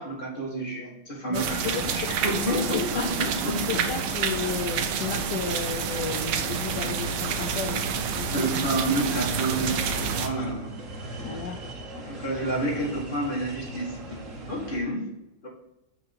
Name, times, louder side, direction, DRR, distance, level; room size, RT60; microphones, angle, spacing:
voice 1, 0.0-4.0 8.3-10.7 11.0-11.4 12.0-15.1 15.4-15.5, right 1 dB, 25° left, -3 dB, 2.0 m, -30 dB
voice 2, 1.3-1.9 2.5-3.3 3.7-7.9 8.2-8.4 11.2-11.6, left 6 dB, 70° left, 4 dB, 1.0 m, -33 dB
sound 1, 1.3-10.3, right 6 dB, 80° right, 1.5 m, -29 dB
sound 2, 5.4-14.8, right 1 dB, 40° right, 1.4 m, -38 dB
6.9 x 3.9 x 5.9 m, 0.91 s
omnidirectional pair, 2.3 m